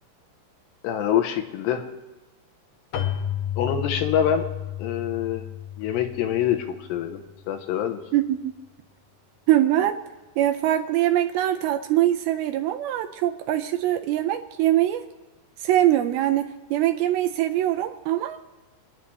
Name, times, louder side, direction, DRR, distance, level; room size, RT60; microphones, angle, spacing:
voice 1, 0.8-1.8 3.6-4.5 4.8-5.4 5.8-7.2 7.5-8.0, left 9 dB, 90° left, 6 dB, 3.2 m, -25 dB
Keyboard (musical), 2.9-7.4, left 10 dB, 70° left, 2.5 m, -32 dB
voice 2, 8.1-8.5 9.5-10.0 10.4-15.0 15.6-18.4, right 13 dB, 80° right, 6 dB, 2.2 m, -23 dB
27.0 x 10.0 x 3.2 m, 1.2 s
omnidirectional pair, 4.8 m